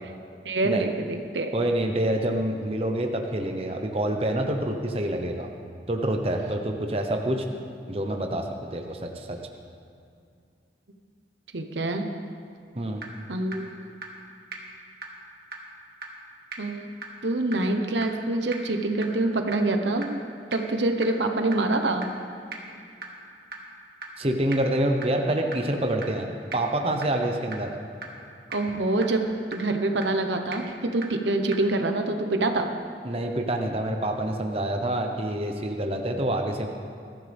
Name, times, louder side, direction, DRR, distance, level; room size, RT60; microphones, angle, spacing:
voice 1, 0.4-1.5 11.5-12.0 13.3-13.7 16.6-16.9 17.2-20.2 20.5-22.1 28.5-29.2 29.5-32.7, right 2 dB, 85° right, 5 dB, 1.1 m, -26 dB
voice 2, 1.5-5.5 5.9-7.4 7.9-8.4 8.7-9.4 12.8-13.0 24.2-26.3 26.5-27.7 33.0-36.7, right 1 dB, 35° right, 3 dB, 1.0 m, -27 dB
sound 1, 12.5-12.6 13.0-13.1 13.5-13.6 14.0-14.1 14.5-14.6 15.0-15.1 15.5-15.6 16.0-16.1 16.5-16.6 17.0-17.1 17.5-17.6 18.0-18.1 18.5-18.6 19.0-19.1 19.5-19.6 20.0-20.1 20.5-20.6 21.0-21.1 21.5-21.6 22.0-22.1 22.5-22.6 23.0-23.1 23.5-23.6 24.0-24.1 24.5-24.6 25.0-25.1 25.5-25.6 26.0-26.1 26.5-26.6 27.0-27.1 27.5-27.6 28.0-28.1 28.5-28.6 29.0-29.1 29.5-29.6 30.0-30.1 30.5-30.6 31.0-31.1 31.5-31.6, right 4 dB, 55° right, 1.9 m, -35 dB
22.0 x 14.0 x 3.6 m, 2.4 s
head